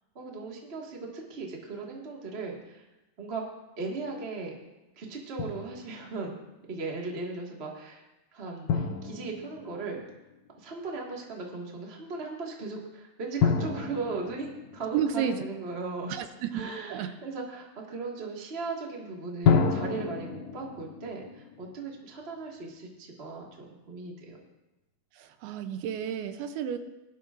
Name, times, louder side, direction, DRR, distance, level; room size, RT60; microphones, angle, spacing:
voice 1, 0.1-2.8 3.2-3.4 3.8-4.6 4.9-6.3 6.7-8.0 8.3-10.0 10.6-16.3 16.5-24.4, right 3 dB, 60° right, -1 dB, 0.6 m, -37 dB
Drum, 5.4-6.1 8.7-10.5 13.4-15.9 19.4-22.6, left 6 dB, 85° left, 1.6 m, -30 dB
voice 2, 14.9-15.4 16.1-17.1 25.2-26.8, right 8 dB, 85° right, 9 dB, 2.7 m, -32 dB
19.5 x 11.0 x 2.5 m, 1.0 s
omnidirectional pair, 4.5 m